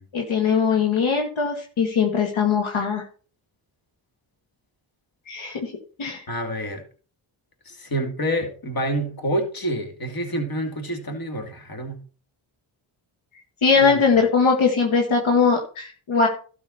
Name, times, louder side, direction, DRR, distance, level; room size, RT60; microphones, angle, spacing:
voice 1, 0.1-3.0 5.3-5.7 6.0-6.2 13.6-16.3, left 5 dB, 75° left, 1 dB, 1.8 m, -20 dB
voice 2, 6.3-6.8 7.7-12.0 13.7-14.0, right 1 dB, 45° left, 4 dB, 2.7 m, -28 dB
12.5 x 6.3 x 4.2 m, 0.38 s
cardioid pair, 55°, 48 cm